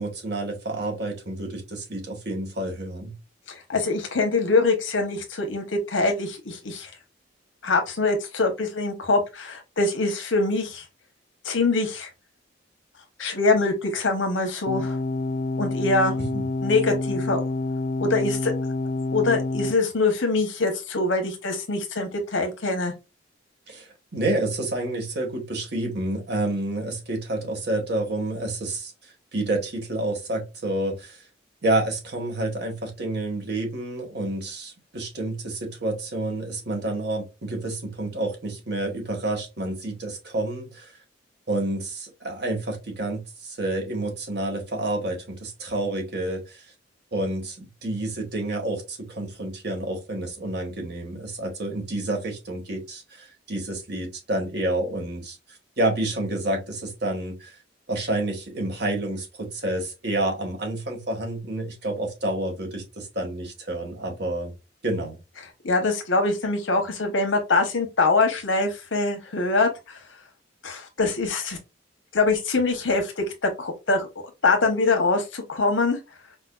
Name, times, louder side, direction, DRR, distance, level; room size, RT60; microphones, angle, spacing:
voice 1, 0.0-3.1 16.2-16.5 23.7-28.9 29.3-31.2 31.6-40.9 41.5-46.6 47.1-57.6 57.9-64.5 64.8-65.2, right 1 dB, 60° right, 1.4 m, -29 dB
voice 2, 3.5-6.9 7.6-10.8 11.4-12.1 13.2-15.0 15.6-16.2 16.6-17.4 18.0-18.5 19.1-22.9 65.6-70.0 70.6-71.6 72.1-74.1 74.4-76.0, left 3 dB, 80° left, 1.1 m, -24 dB
sound 1, 14.7-19.7, left 2 dB, 40° left, 0.4 m, -27 dB
4.9 x 2.2 x 2.4 m
head